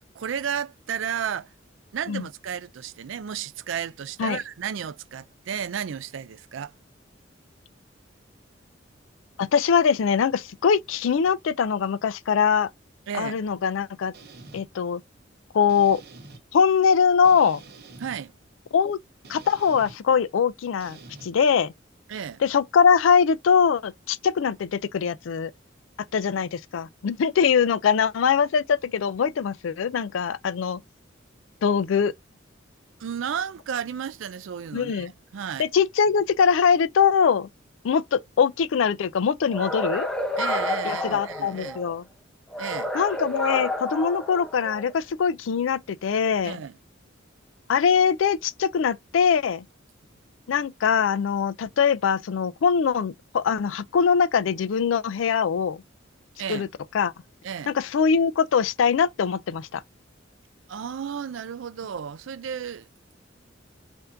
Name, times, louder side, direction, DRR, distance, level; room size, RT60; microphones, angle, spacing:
voice 1, 0.1-1.5 1.9-6.7 13.1-13.4 18.0-18.3 22.1-22.4 33.0-35.7 40.4-41.8 42.6-42.9 46.4-46.8 56.4-56.7 57.4-57.7 60.7-62.9, right 8 dB, 80° right, 0.4 m, -33 dB
voice 2, 9.4-12.7 13.2-14.1 14.5-15.0 15.5-16.0 16.5-17.6 18.7-19.0 19.3-21.7 22.4-25.5 26.1-30.8 31.6-32.1 34.7-35.1 35.6-37.5 37.8-40.1 40.8-42.0 42.9-46.6 47.7-49.6 50.5-55.8 56.5-56.7 56.9-57.1 57.7-59.8, left 6 dB, 85° left, 0.4 m, -22 dB
sound 1, 14.1-14.6 15.7-16.4 17.2-18.2 19.2-20.0 20.8-21.3, right 3 dB, 55° right, 0.8 m, -46 dB
sound 2, 39.5-41.9 42.5-44.9, left 1 dB, 5° left, 0.7 m, -30 dB
4.2 x 2.7 x 2.5 m
head